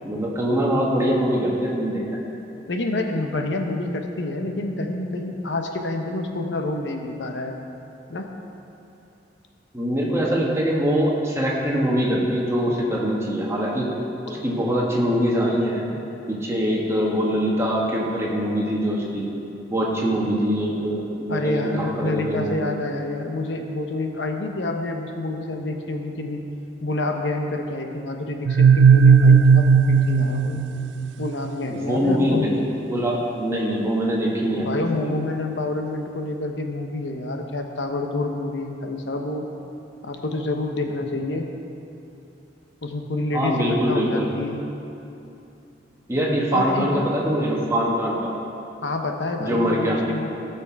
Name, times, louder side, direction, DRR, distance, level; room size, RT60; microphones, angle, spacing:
voice 1, 0.0-2.0 9.7-13.9 14.2-15.9 16.3-19.3 19.7-22.7 31.7-32.5 32.9-34.9 43.3-44.3 46.1-48.3 49.4-50.0, equal, 15° right, -4 dB, 1.6 m, -23 dB
voice 2, 2.7-7.5 8.1-8.3 21.3-26.4 26.8-30.6 31.2-32.5 34.6-39.5 40.0-41.5 42.8-44.6 46.5-46.9 48.8-50.3, left 2 dB, 75° left, 4 dB, 0.9 m, -28 dB
sound 1, 28.5-31.3, right 6 dB, 85° right, 0.4 m, -15 dB
16.5 x 6.1 x 4.7 m, 2.8 s
head